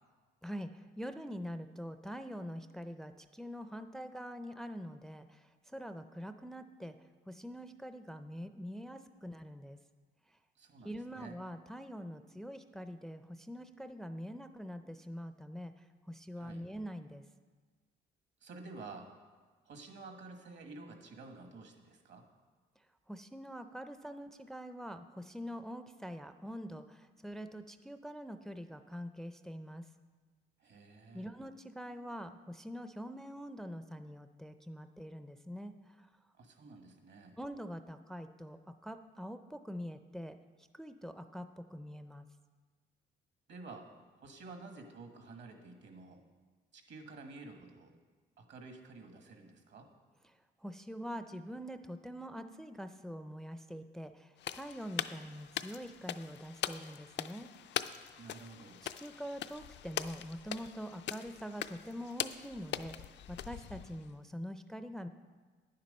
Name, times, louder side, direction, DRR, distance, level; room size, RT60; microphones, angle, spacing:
voice 1, 0.4-7.0 7.3-9.8 10.8-15.7 16.1-17.2 23.1-29.8 31.1-36.1 37.4-40.4 40.7-42.3 50.6-57.7 58.8-65.1, equal, ahead, 9 dB, 0.4 m, -44 dB
voice 2, 10.6-11.4 16.4-16.7 18.4-19.1 19.6-22.3 30.6-31.3 36.4-37.4 43.5-43.9 44.2-46.2 46.7-47.9 48.4-49.9 58.2-58.9, right 3 dB, 65° right, 5 dB, 1.5 m, -51 dB
sound 1, 54.4-64.1, left 10 dB, 65° left, 0.4 m, -42 dB
9.9 x 7.4 x 5.3 m, 1.4 s
cardioid pair, 90°, 20 cm